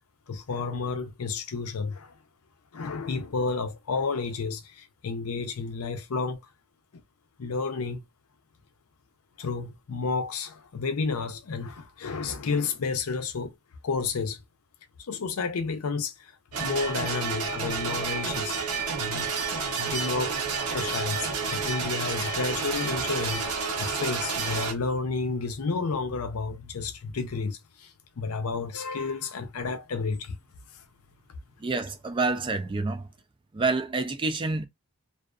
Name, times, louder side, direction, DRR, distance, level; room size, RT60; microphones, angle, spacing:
voice 1, 0.3-2.1 2.7-6.4 6.9-7.0 7.4-8.0 9.4-13.5 13.8-14.4 15.1-16.3 16.6-18.7 19.0-19.3 19.8-20.4 20.7-23.5 23.8-30.4, left 4 dB, 75° left, 0.6 m, -31 dB
sound 1, 16.5-24.7, right 5 dB, 80° right, 0.8 m, -30 dB
voice 2, 31.6-33.1 33.5-34.7, right 3 dB, 20° right, 0.3 m, -28 dB
2.5 x 2.4 x 2.3 m
head